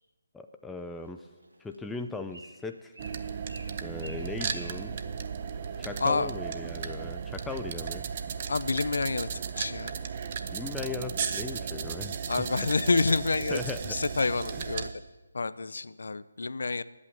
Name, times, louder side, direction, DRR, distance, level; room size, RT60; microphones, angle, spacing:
voice 1, 0.3-1.3 1.6-2.9 3.8-5.0 5.8-8.0 10.5-12.2 13.5-14.0, left 3 dB, 5° left, 6 dB, 0.4 m, -38 dB
Bird, 0.8-5.9, right 2 dB, 75° right, 2.3 m, -52 dB
sound 1, 3.0-14.9, right 7 dB, 35° right, 0.6 m, -35 dB
voice 2, 6.0-6.3 8.5-9.3 9.6-9.9 12.3-13.6 13.8-14.9 15.3-16.8, left 3 dB, 60° left, 16 dB, 0.5 m, -28 dB
8.5 x 8.4 x 9.1 m, 1.2 s
figure-of-eight pair, 150°, 0 cm